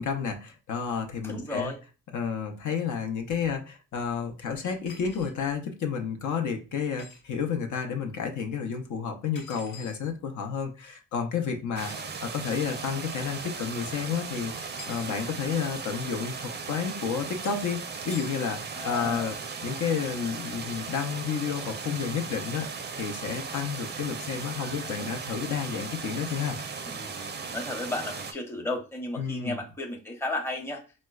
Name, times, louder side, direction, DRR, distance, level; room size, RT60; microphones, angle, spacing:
voice 1, 0.0-1.7 2.1-17.8 18.0-19.3 19.6-22.7 23.0-26.6 29.2-29.6, left 6 dB, 65° left, 4 dB, 0.6 m, -31 dB
voice 2, 1.2-1.8 11.9-12.1 18.7-19.4 24.6-25.1 26.9-30.8, left 2 dB, 10° left, 0 dB, 0.7 m, -34 dB
sound 1, 4.9-5.3 7.0-7.2 9.3-10.0 11.8-12.0 14.6-15.2 18.1-18.4, left 4 dB, 85° left, 1.2 m, -46 dB
sound 2, 11.8-28.3, right 5 dB, 35° right, 0.4 m, -37 dB
4.3 x 2.1 x 2.3 m, 0.33 s
cardioid pair, 90°, 32 cm